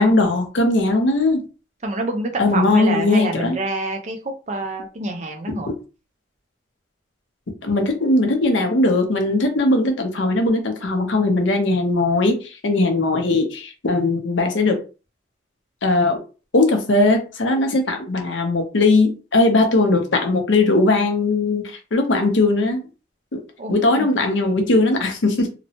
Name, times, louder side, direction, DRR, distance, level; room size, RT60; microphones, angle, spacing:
voice 1, 0.0-1.5 2.4-3.6 7.6-14.8 15.8-16.2 16.5-22.8 23.3-23.4 23.7-25.5, left 2 dB, 75° left, 0.6 m, -19 dB
voice 2, 1.8-4.2 4.5-5.7 23.6-24.1, right 2 dB, 35° right, 0.5 m, -26 dB
2.9 x 2.1 x 2.7 m
head